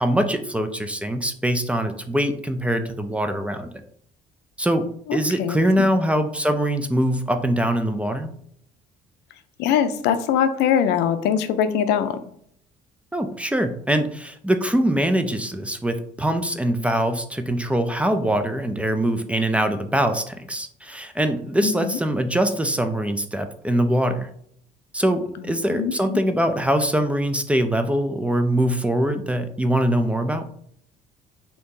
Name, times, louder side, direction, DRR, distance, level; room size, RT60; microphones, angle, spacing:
voice 1, 0.0-3.7 4.6-4.8 5.1-8.3 13.1-24.3 24.9-30.4, right 1 dB, 5° right, 7 dB, 0.3 m, -23 dB
voice 2, 5.1-5.9 9.6-12.2 21.6-22.0 25.7-26.2, left 8 dB, 85° left, 10 dB, 0.4 m, -22 dB
2.8 x 2.6 x 3.6 m, 0.66 s
cardioid pair, 110°, 17 cm